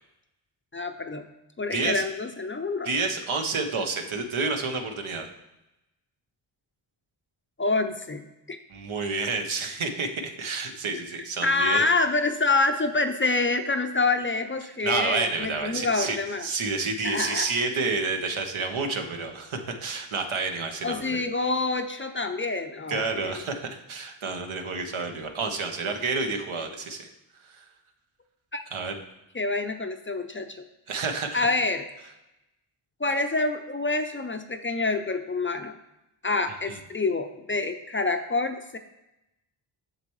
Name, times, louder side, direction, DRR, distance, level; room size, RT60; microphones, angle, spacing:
voice 1, 0.7-1.2 1.6-2.9 7.6-8.6 11.4-16.5 17.0-17.5 20.8-23.3 28.5-28.6 29.3-30.6 31.3-31.8 33.0-35.7 36.2-38.8, left 3 dB, 25° left, 7 dB, 0.5 m, -27 dB
voice 2, 1.7-2.0 2.8-5.3 8.7-11.8 14.8-21.2 22.9-27.1 27.4-27.6 28.7-28.9 30.9-31.5 36.7-36.8, right 4 dB, 75° right, 4 dB, 1.1 m, -29 dB
7.6 x 6.6 x 3.2 m, 0.92 s
cardioid pair, 60°, 49 cm